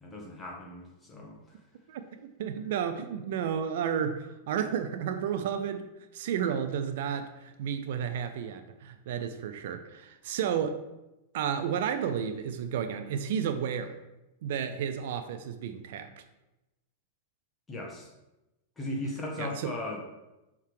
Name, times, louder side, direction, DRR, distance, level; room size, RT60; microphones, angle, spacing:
voice 1, 0.0-1.6 17.7-18.1 18.8-20.0, left 1 dB, 15° left, -1 dB, 1.5 m, -37 dB
voice 2, 1.9-5.9 6.1-10.8 11.3-14.0 14.4-16.2 19.4-19.7, right 8 dB, 70° right, 9 dB, 0.5 m, -32 dB
5.6 x 3.6 x 4.8 m, 0.98 s
hypercardioid pair, 125°, 0 cm